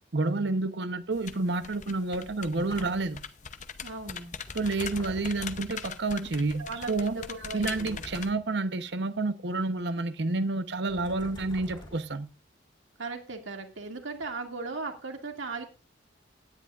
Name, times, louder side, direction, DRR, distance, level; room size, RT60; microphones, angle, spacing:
voice 1, 0.1-3.2 4.5-7.2 7.5-12.3, right 3 dB, 60° right, 0.9 m, -29 dB
sound 1, 1.1-8.3, left 6 dB, 40° left, 0.7 m, -42 dB
sound 2, 2.6-3.3 4.5-5.9 7.6-8.5 10.9-12.3, left 1 dB, 25° left, 2.5 m, -47 dB
voice 2, 3.8-4.4 6.6-8.0 13.0-15.6, right 3 dB, 85° right, 2.2 m, -37 dB
16.5 x 10.5 x 2.4 m
head